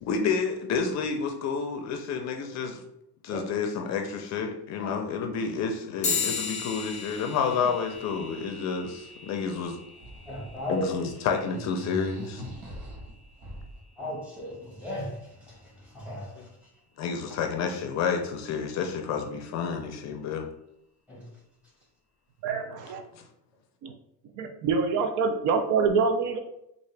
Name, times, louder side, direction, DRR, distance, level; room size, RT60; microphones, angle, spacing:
voice 1, 0.0-2.8 3.2-9.8 10.7-12.4 16.4-16.5 17.0-20.5 23.1-23.2, left 5 dB, 50° left, 4 dB, 0.5 m, -30 dB
sound 1, 6.0-15.9, left 5 dB, 20° left, 0.8 m, -38 dB
sound 2, 6.7-6.8 7.1-8.7 9.6-10.7 11.0-11.1 11.4-13.8, right 1 dB, 90° right, 1.0 m, -42 dB
voice 2, 10.3-10.9 14.0-16.5 21.1-21.3, left 1 dB, 5° right, -5 dB, 1.2 m, -36 dB
voice 3, 22.4-23.0 23.8-23.9 24.4-26.4, right 5 dB, 65° right, 6 dB, 0.5 m, -25 dB
3.6 x 2.5 x 3.2 m, 0.82 s
cardioid pair, 160°, 34 cm